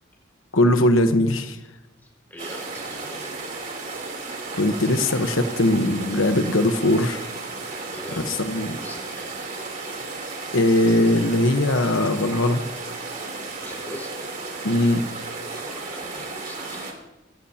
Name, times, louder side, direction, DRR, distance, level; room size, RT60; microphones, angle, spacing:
voice 1, 0.5-1.6 4.5-7.3 8.2-8.8 10.5-12.6 14.6-15.0, left 1 dB, 85° left, 7 dB, 1.1 m, -20 dB
voice 2, 2.0-3.3 7.9-8.3 8.8-9.3 13.3-14.3 15.5-17.0, left 1 dB, 10° left, -2 dB, 4.9 m, -41 dB
sound 1, 2.4-16.9, right 3 dB, 45° right, 3.3 m, -34 dB
23.5 x 17.0 x 2.9 m, 1.0 s
head